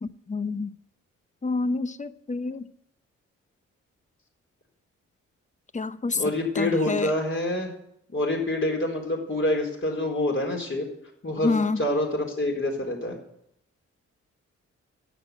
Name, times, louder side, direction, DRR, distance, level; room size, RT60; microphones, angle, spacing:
voice 1, 0.0-0.7 1.4-2.7 5.7-6.2 6.6-7.1 11.4-11.8, left 3 dB, 25° left, 0.8 m, -28 dB
voice 2, 6.1-7.7 8.1-10.9 11.2-13.2, left 1 dB, 40° left, 4.1 m, -26 dB
10.0 x 8.3 x 9.4 m
cardioid pair, 60°, 30 cm